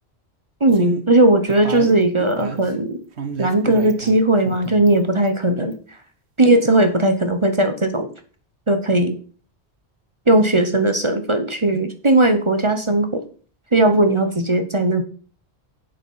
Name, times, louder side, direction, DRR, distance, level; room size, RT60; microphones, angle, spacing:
voice 1, 0.6-3.0 3.4-5.7 6.4-8.1 8.7-9.1 10.3-13.2 13.7-15.0, right 1 dB, 30° right, 8 dB, 0.9 m, -17 dB
sound 1, 0.7-1.0 1.4-2.7 3.2-4.2 4.5-5.0 5.3-5.4 5.7-5.8, right 5 dB, 70° right, 1.4 m, -30 dB
8.0 x 7.0 x 5.6 m, 0.41 s
omnidirectional pair, 1.1 m